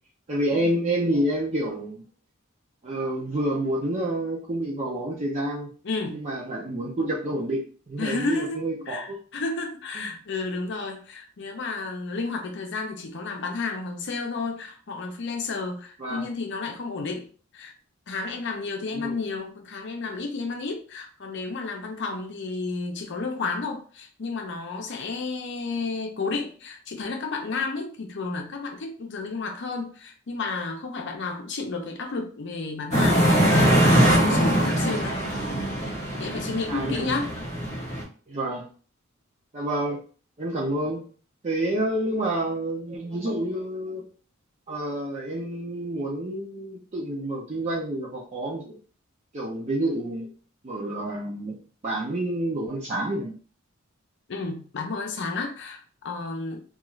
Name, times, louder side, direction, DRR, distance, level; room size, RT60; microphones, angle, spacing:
voice 1, 0.3-2.0 2.8-5.7 6.1-9.2 10.0-10.1 16.0-16.3 18.9-19.2 36.7-37.1 38.3-38.7 39.5-40.0 40.4-41.0 41.4-44.1 44.7-48.8 49.3-50.3 50.6-51.6 51.8-53.4, right 1 dB, 35° right, -4 dB, 0.5 m, -28 dB
voice 2, 5.8-6.2 8.0-17.3 17.5-17.7 18.1-35.2 36.2-37.3 54.3-56.6, left 3 dB, 60° left, 3 dB, 0.6 m, -32 dB
sound 1, 32.9-38.0, equal, 35° left, 1.0 m, -22 dB
2.4 x 2.4 x 3.0 m, 0.41 s
head